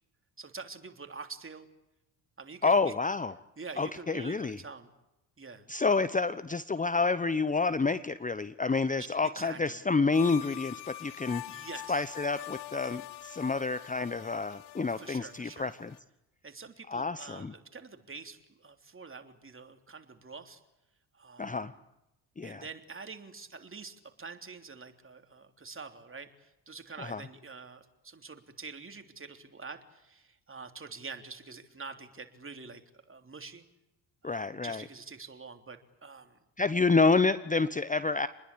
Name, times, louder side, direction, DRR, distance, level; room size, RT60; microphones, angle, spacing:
voice 1, 0.4-1.7 2.4-2.9 3.6-4.9 5.4-5.7 9.0-9.8 11.5-12.1 15.0-15.7 16.4-20.6 21.1-21.8 22.4-32.8 33.1-33.6 34.2-36.4, right 4 dB, 25° right, 6 dB, 3.4 m, -46 dB
voice 2, 2.6-3.3 3.8-4.6 5.7-11.4 11.9-15.9 16.9-17.5 21.4-21.7 22.4-22.6 27.0-27.2 34.2-34.8 36.6-38.3, left 4 dB, 15° left, 14 dB, 1.0 m, -28 dB
sound 1, 10.1-16.0, left 16 dB, 80° left, 1.0 m, -44 dB
28.0 x 20.5 x 8.7 m, 0.91 s
hypercardioid pair, 50°, 50 cm